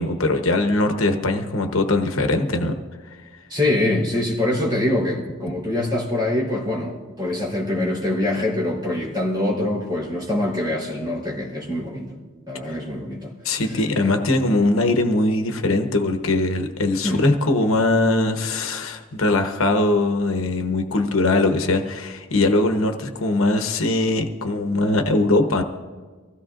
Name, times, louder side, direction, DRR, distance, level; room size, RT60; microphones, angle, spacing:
voice 1, 0.0-2.7 12.7-12.8 13.4-25.6, left 2 dB, 80° left, 5 dB, 1.0 m, -21 dB
voice 2, 3.5-12.1 12.5-13.6 17.0-17.2, left 1 dB, 20° right, -4 dB, 3.8 m, -24 dB
24.0 x 16.0 x 2.5 m, 1.4 s
head